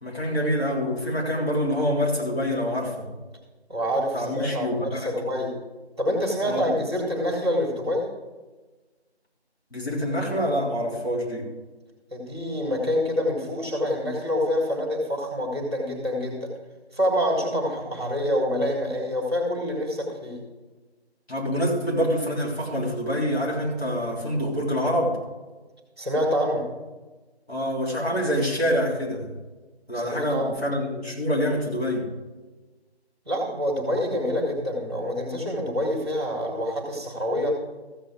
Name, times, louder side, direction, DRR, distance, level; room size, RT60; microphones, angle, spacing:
voice 1, 0.0-3.1 4.1-5.5 6.4-6.8 9.7-11.5 21.3-25.2 27.5-29.3 29.9-32.1, equal, 65° left, -3 dB, 3.6 m, -26 dB
voice 2, 3.7-5.5 6.0-8.1 12.1-16.5 16.9-20.4 26.0-26.7 29.9-30.5 33.3-37.6, equal, 25° right, 0 dB, 1.6 m, -26 dB
14.5 x 7.3 x 4.8 m, 1.2 s
figure-of-eight pair, 165°, 33 cm